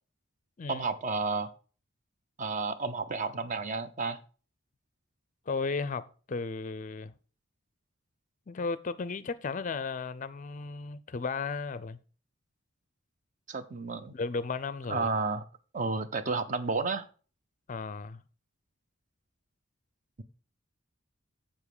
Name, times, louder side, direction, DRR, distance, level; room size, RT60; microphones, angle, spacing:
voice 1, 0.7-1.5 2.4-4.2 13.5-14.1 14.9-15.4 15.7-17.1, right 4 dB, 35° right, 0.7 m, -31 dB
voice 2, 5.5-7.1 8.5-12.0 14.1-15.1 17.7-18.2, left 4 dB, 40° left, 0.4 m, -35 dB
7.5 x 7.3 x 4.8 m
head